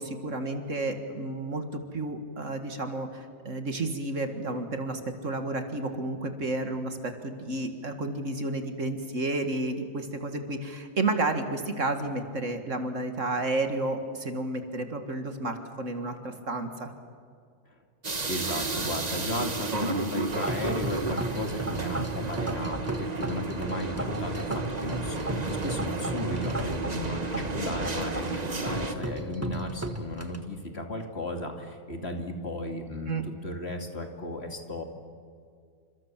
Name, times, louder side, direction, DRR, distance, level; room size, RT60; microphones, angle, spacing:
voice 1, 0.0-1.6 1.9-16.9 33.1-33.2, right 2 dB, 50° right, 6 dB, 2.3 m, -31 dB
sound 1, 18.0-28.9, right 3 dB, 30° right, 1.4 m, -32 dB
voice 2, 18.3-34.8, left 1 dB, 40° left, 4 dB, 2.7 m, -35 dB
sound 2, 20.3-30.4, right 1 dB, 10° right, 1.5 m, -36 dB
29.0 x 26.5 x 7.5 m, 2.1 s
omnidirectional pair, 1.7 m